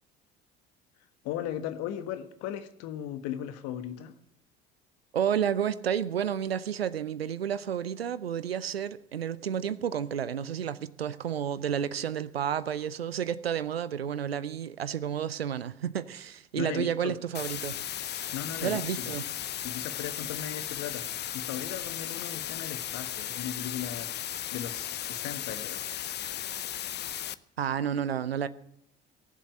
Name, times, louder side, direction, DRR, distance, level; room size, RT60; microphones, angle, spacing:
voice 1, 1.2-4.2 16.5-17.1 18.3-19.1 19.5-24.1 24.5-25.8, left 10 dB, 60° left, 1.5 m, -37 dB
voice 2, 5.1-17.8 18.0-18.3 18.6-19.2 27.6-28.5, right 9 dB, 85° right, 0.6 m, -31 dB
sound 1, 17.3-27.3, left 11 dB, 35° left, 0.6 m, -36 dB
18.5 x 7.4 x 8.8 m
figure-of-eight pair, 60°, 30 cm